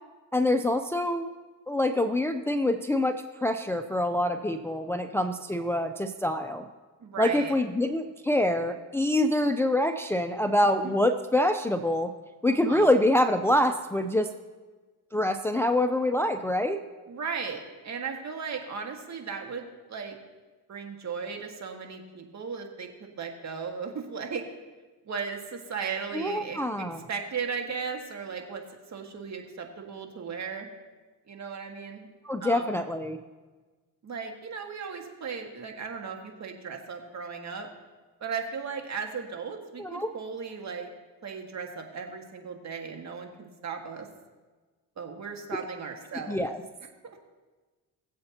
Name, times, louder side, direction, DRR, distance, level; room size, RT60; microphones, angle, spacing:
voice 1, 0.3-1.3 1.7-6.7 7.2-12.1 12.4-14.3 15.1-16.8 26.1-27.1 32.2-33.2 39.8-40.1 46.3-46.6, left 1 dB, 5° left, 7 dB, 0.5 m, -25 dB
voice 2, 7.0-7.5 10.8-10.9 12.5-12.9 17.1-20.2 20.7-24.4 25.1-30.7 31.3-32.1 32.4-32.8 34.0-37.7 38.2-40.9 41.2-44.1 45.0-46.4 47.0-47.2, right 5 dB, 50° right, 3 dB, 1.8 m, -36 dB
21.0 x 7.7 x 2.9 m, 1.3 s
cardioid pair, 90°, 36 cm